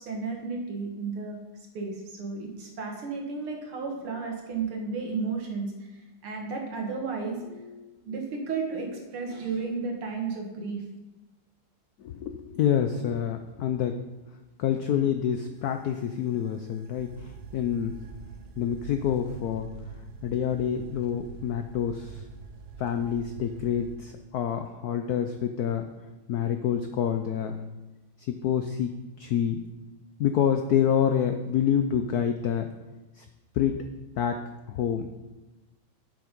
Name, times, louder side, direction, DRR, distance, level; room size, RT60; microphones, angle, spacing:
voice 1, 0.0-1.4 1.7-10.8, right 4 dB, 85° right, 1 dB, 2.5 m, -33 dB
voice 2, 12.0-14.0 14.6-17.9 18.6-19.7 20.2-22.2 22.8-25.9 26.3-27.6 28.2-28.9 29.2-29.6 30.2-32.7 33.2-33.3 33.5-33.8 34.2-34.4 34.7-35.1, left 9 dB, 85° left, 7 dB, 0.8 m, -27 dB
sound 1, 15.5-24.0, right 6 dB, 60° right, 1.1 m, -45 dB
7.7 x 7.4 x 5.2 m, 1.1 s
omnidirectional pair, 2.3 m